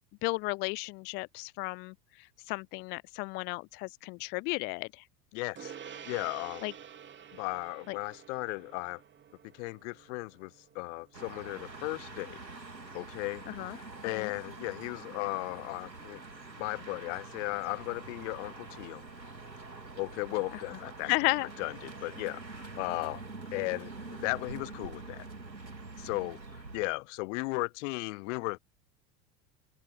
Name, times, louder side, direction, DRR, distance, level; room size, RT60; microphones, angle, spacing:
voice 1, 0.0-1.9 2.5-5.0 6.6-6.7 7.9-8.0 13.6-13.8 14.2-14.3 21.0-21.5, left 26 dB, 25° left, 0.4 m, -33 dB
voice 2, 5.3-6.7 7.3-9.0 9.5-12.4 12.9-16.2 16.6-19.0 20.0-21.1 21.6-23.2 23.5-25.2 26.0-28.6, left 26 dB, 45° left, 1.3 m, -36 dB
Gong, 5.6-15.3, right 8 dB, 20° right, 2.9 m, -51 dB
sound 1, 11.1-26.8, right 3 dB, 85° right, 3.3 m, -45 dB
open air
figure-of-eight pair, 85°, 49 cm